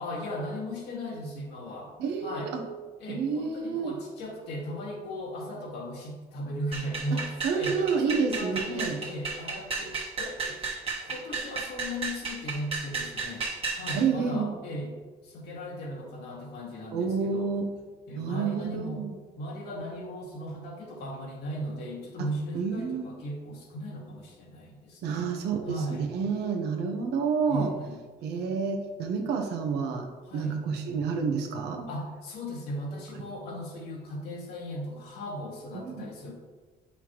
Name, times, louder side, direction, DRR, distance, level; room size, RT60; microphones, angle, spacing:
voice 1, 0.0-1.9 2.2-2.5 3.0-7.3 7.5-7.8 8.0-10.6 11.0-13.4 13.8-14.9 15.2-17.5 18.1-19.0 19.4-25.3 25.7-26.0 27.5-28.0 30.3-30.6 31.9-36.3, equal, 75° left, -2 dB, 2.0 m, -37 dB
voice 2, 2.0-2.6 3.1-3.9 7.1-9.0 13.9-14.5 16.9-17.7 18.2-19.1 22.2-22.3 22.5-23.1 25.0-27.7 28.2-30.1 30.3-31.9 35.7-36.1, right 5 dB, 80° right, 3 dB, 1.1 m, -29 dB
sound 1, 6.7-14.1, right 4 dB, 35° right, 1.5 m, -34 dB
8.5 x 5.7 x 3.0 m, 1.4 s
cardioid pair, 110°, 17 cm